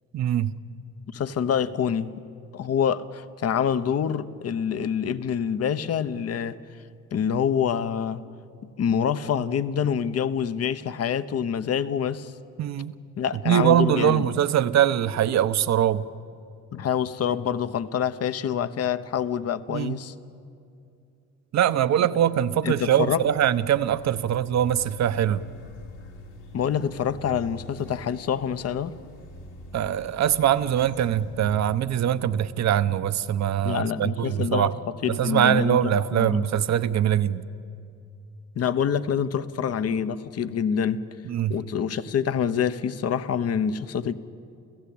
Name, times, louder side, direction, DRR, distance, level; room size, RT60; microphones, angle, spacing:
voice 1, 0.1-0.5 12.6-12.9 13.4-16.1 19.7-20.0 21.5-25.4 29.7-34.7 35.1-37.4 41.2-41.6, right 10 dB, 65° right, 0.9 m, -22 dB
voice 2, 1.1-2.1 2.5-6.6 7.1-8.2 8.8-12.3 13.2-14.3 16.7-20.1 22.6-23.2 26.5-29.0 33.6-34.7 35.0-35.8 36.1-36.4 38.5-41.0 41.5-44.1, left 8 dB, 55° left, 1.0 m, -26 dB
sound 1, 22.0-31.7, equal, 80° left, 3.9 m, -45 dB
29.0 x 15.5 x 8.7 m
cardioid pair, 90°, 30 cm